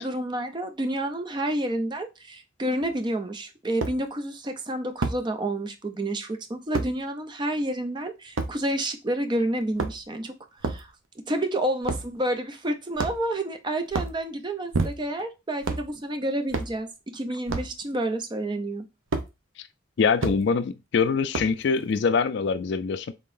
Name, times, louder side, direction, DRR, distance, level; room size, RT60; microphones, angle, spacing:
voice 1, 0.0-10.3 10.6-10.9 11.3-16.9 17.1-18.8, right 1 dB, 25° right, 0.5 m, -29 dB
sound 1, 2.8-2.9 3.8-4.0 5.0-5.2 6.7-6.9 8.4-8.5 9.6-10.2 10.6-10.9 11.8-12.1 13.0-13.4 13.9-14.2 14.7-15.2 15.6-15.9 16.5-16.8 17.5-17.7 19.1-19.3 20.2-20.4 21.3-21.6, right 3 dB, 80° right, 0.6 m, -28 dB
voice 2, 20.0-23.1, left 5 dB, 60° left, 0.3 m, -24 dB
3.7 x 3.7 x 2.5 m
head